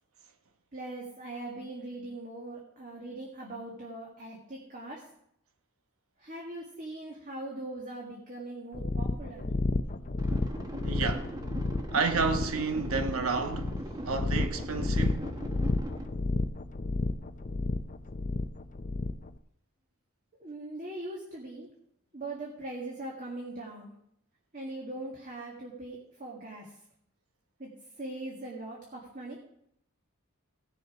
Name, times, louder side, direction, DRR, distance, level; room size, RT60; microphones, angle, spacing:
voice 1, 0.7-5.1 6.2-9.5 20.3-21.7 22.1-23.9 24.5-26.8 27.6-29.4, right 2 dB, 40° right, 1.8 m, -41 dB
sound 1, 8.7-19.3, left 2 dB, 35° left, 0.6 m, -31 dB
sound 2, 10.2-16.1, equal, 20° right, 1.3 m, -40 dB
voice 2, 10.8-11.3 11.9-15.4, right 4 dB, 80° right, 1.1 m, -31 dB
16.5 x 7.0 x 4.8 m
head